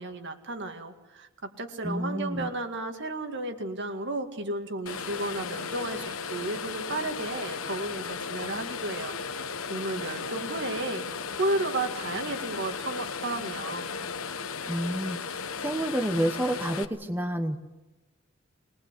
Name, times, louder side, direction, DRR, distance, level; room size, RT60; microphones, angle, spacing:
voice 1, 0.0-9.1 9.7-11.0 11.4-13.9, right 2 dB, 55° right, 6 dB, 2.1 m, -33 dB
voice 2, 1.8-2.5 14.7-17.6, right 1 dB, 10° right, 6 dB, 1.0 m, -29 dB
sound 1, 4.9-16.9, left 5 dB, 75° left, 1.2 m, -35 dB
23.0 x 20.0 x 8.3 m, 1.1 s
head